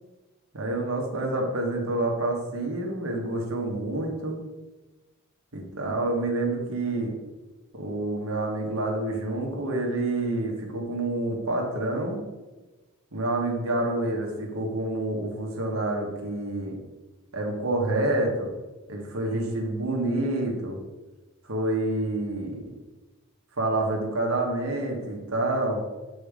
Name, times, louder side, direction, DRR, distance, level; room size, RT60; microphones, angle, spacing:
voice 1, 0.5-4.4 5.5-7.1 7.7-12.2 13.1-16.8 17.3-18.5 18.9-20.8 21.4-22.7 23.6-25.8, right 2 dB, 65° right, 0 dB, 1.2 m, -28 dB
6.6 x 4.2 x 5.0 m, 1.2 s
head